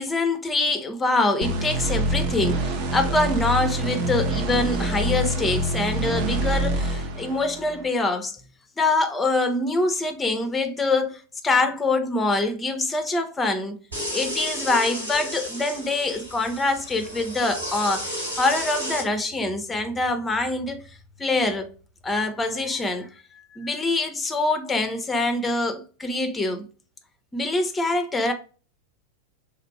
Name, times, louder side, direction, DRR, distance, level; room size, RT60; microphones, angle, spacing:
voice 1, 0.0-8.3 8.8-13.8 14.1-20.8 21.2-21.7 22.0-23.1 23.5-26.7 27.3-28.3, left 2 dB, 15° left, 0.4 m, -24 dB
sound 1, 1.4-7.9, right 1 dB, 45° right, 0.5 m, -26 dB
sound 2, 13.9-19.0, equal, 85° right, 1.5 m, -32 dB
3.0 x 2.5 x 2.8 m
figure-of-eight pair, 90°, 0 cm